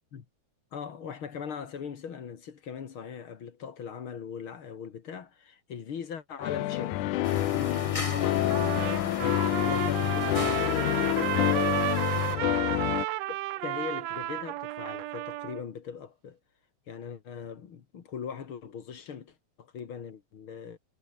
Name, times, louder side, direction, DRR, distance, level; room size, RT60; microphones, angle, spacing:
voice 1, 0.7-7.1 7.5-11.4 13.3-16.4 16.9-20.8, left 7 dB, 50° left, 2.3 m, -40 dB
sound 1, 6.4-13.1, left 15 dB, 85° left, 2.4 m, -27 dB
sound 2, 7.2-12.4, left 2 dB, 10° left, 2.5 m, -38 dB
Trumpet, 8.5-15.6, right 16 dB, 75° right, 1.7 m, -33 dB
omnidirectional pair, 3.4 m